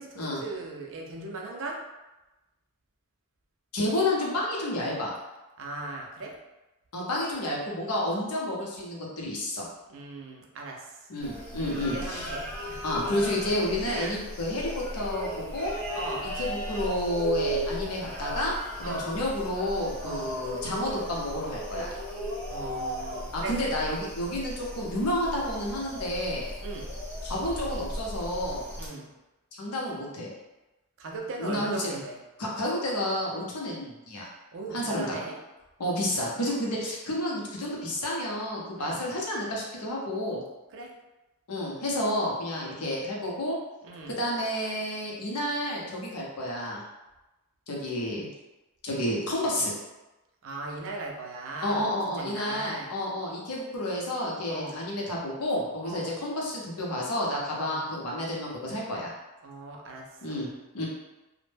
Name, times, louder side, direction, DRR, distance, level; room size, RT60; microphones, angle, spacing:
voice 1, 0.0-1.8 5.6-6.4 9.9-11.1 11.6-13.5 13.8-14.2 15.9-16.4 18.8-19.1 20.0-20.3 22.5-23.6 26.6-26.9 28.8-29.1 31.0-32.2 34.5-35.4 38.7-39.0 40.7-40.9 42.5-42.9 43.8-44.2 50.4-51.9 52.1-52.9 54.5-54.8 55.8-56.1 57.5-57.8 59.4-60.4, right 3 dB, 60° right, 0 dB, 0.4 m, -39 dB
voice 2, 3.7-5.1 6.9-9.7 11.1-12.3 12.8-15.7 16.4-18.5 18.8-21.9 23.3-26.5 27.2-28.6 29.5-30.3 31.4-32.0 32.4-34.3 34.7-35.2 35.8-40.4 41.5-43.6 44.2-46.8 47.7-48.3 48.8-49.7 51.6-59.1 60.2-60.9, left 1 dB, 85° left, -3 dB, 0.7 m, -30 dB
sound 1, 11.2-28.9, right 1 dB, 5° left, 0.7 m, -36 dB
2.1 x 2.1 x 3.2 m, 1.0 s
head